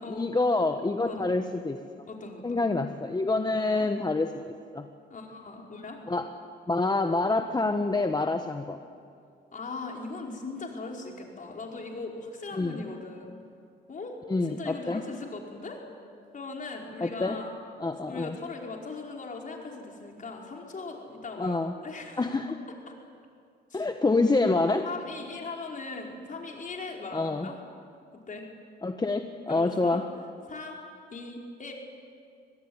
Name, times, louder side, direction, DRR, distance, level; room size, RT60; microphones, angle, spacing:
voice 1, 0.1-2.0 2.4-4.9 6.1-6.3 6.7-8.8 12.5-12.8 14.3-15.0 17.0-17.4 17.8-18.4 21.4-21.7 22.2-22.6 23.7-24.9 27.1-27.5 28.8-30.1, left 3 dB, 20° left, 6 dB, 1.2 m, -27 dB
voice 2, 2.1-2.7 3.6-3.8 5.1-6.0 9.5-13.4 13.9-14.2 14.4-15.8 16.3-17.5 18.1-21.6 21.8-22.3 22.9-23.0 23.7-23.9 24.6-27.6 28.3-28.5 29.5-30.0 30.5-30.8 31.1-31.7, left 3 dB, 40° left, 0 dB, 5.1 m, -39 dB
24.5 x 19.0 x 9.8 m, 2.3 s
cardioid pair, 90°, 20 cm